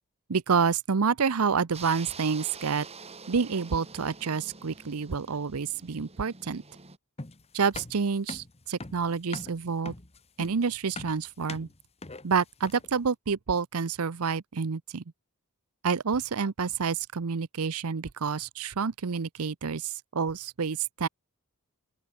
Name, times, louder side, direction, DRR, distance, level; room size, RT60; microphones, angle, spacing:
voice 1, 0.3-2.9 3.3-6.6 7.5-9.9 10.4-11.7 12.2-15.0 15.8-21.1, right 5 dB, 75° right, 0.7 m, -28 dB
sound 1, 1.7-7.0, right 5 dB, 30° right, 4.1 m, -46 dB
sound 2, 7.2-13.0, left 3 dB, 30° left, 1.3 m, -42 dB
open air
head